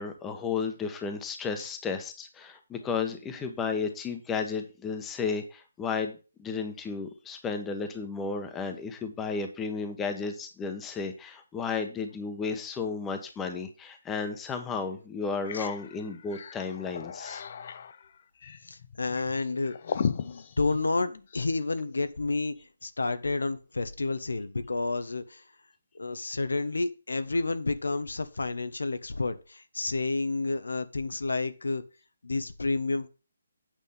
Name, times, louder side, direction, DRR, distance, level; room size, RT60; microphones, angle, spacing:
voice 1, 0.0-17.4, left 5 dB, 10° left, 6 dB, 1.1 m, -33 dB
sound 1, 14.2-14.3 14.8-14.9 15.2-21.6, left 7 dB, 45° left, 0.7 m, -37 dB
voice 2, 18.6-19.8 20.2-22.5 22.8-25.4 25.9-31.8 32.2-33.1, left 3 dB, 85° left, 11 dB, 1.1 m, -30 dB
8.8 x 5.3 x 5.5 m, 0.32 s
hypercardioid pair, 160°, 0 cm